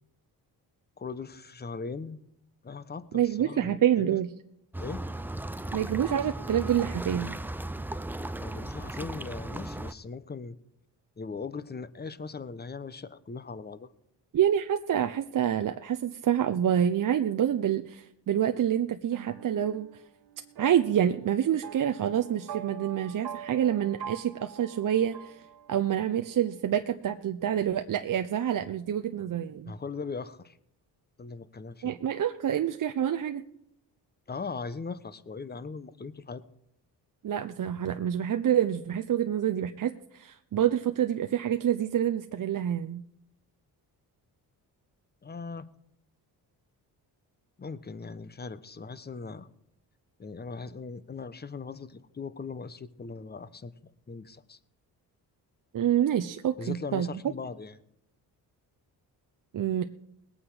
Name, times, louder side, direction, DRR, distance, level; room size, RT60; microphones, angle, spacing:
voice 1, 1.0-2.2 2.6-4.2 4.8-5.0 8.4-10.6 11.2-13.9 29.6-30.6 31.2-31.9 34.3-36.4 45.2-45.7 47.6-49.5 50.2-53.7 54.1-54.6 56.6-57.8, left 4 dB, 25° left, 14 dB, 0.9 m, -39 dB
voice 2, 3.1-4.3 5.7-7.4 14.3-19.9 20.6-25.4 25.7-29.7 31.8-33.4 37.2-43.0 55.7-57.1 59.5-59.8, right 10 dB, 50° right, 7 dB, 0.7 m, -27 dB
sound 1, 4.7-9.9, right 1 dB, 5° right, 0.6 m, -36 dB
sound 2, 19.1-26.1, right 9 dB, 65° right, 1.4 m, -44 dB
20.0 x 8.8 x 5.0 m, 0.76 s
cardioid pair, 70°, 41 cm